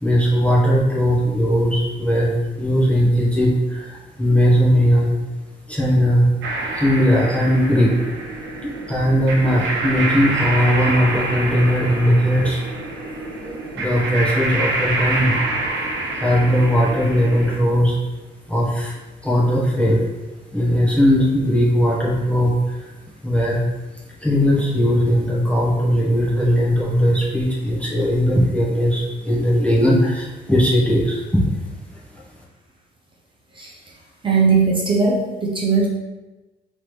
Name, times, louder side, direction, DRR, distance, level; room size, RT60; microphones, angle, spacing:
voice 1, 0.0-5.1 5.7-6.3 6.7-7.9 8.6-12.6 13.4-15.4 16.2-18.0 18.5-18.9 19.2-20.0 20.5-22.9 23.2-23.6 24.2-31.4, equal, 5° left, -6 dB, 1.0 m, -18 dB
sound 1, 6.4-17.6, right 2 dB, 75° right, 0.9 m, -26 dB
voice 2, 34.2-35.9, right 4 dB, 25° right, -4 dB, 0.9 m, -18 dB
3.7 x 3.2 x 3.2 m, 1.1 s
cardioid pair, 90°, 20 cm